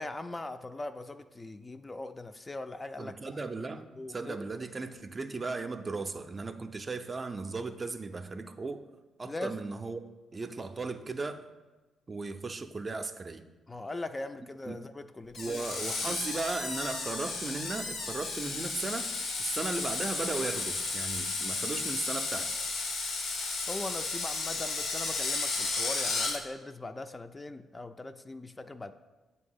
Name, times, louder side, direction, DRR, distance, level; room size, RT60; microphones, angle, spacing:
voice 1, 0.0-3.2 4.0-4.4 9.3-9.5 13.7-15.6 16.1-16.2 23.7-28.9, left 2 dB, 25° left, 9 dB, 0.3 m, -40 dB
voice 2, 3.0-8.8 9.2-11.4 12.1-13.4 14.7-14.8 15.4-19.1 19.4-22.5, right 3 dB, 35° right, 8 dB, 0.4 m, -36 dB
Screech, 15.3-26.4, left 3 dB, 80° left, 0.8 m, -33 dB
7.7 x 2.8 x 5.4 m, 1.2 s
supercardioid pair, 55°, 0 cm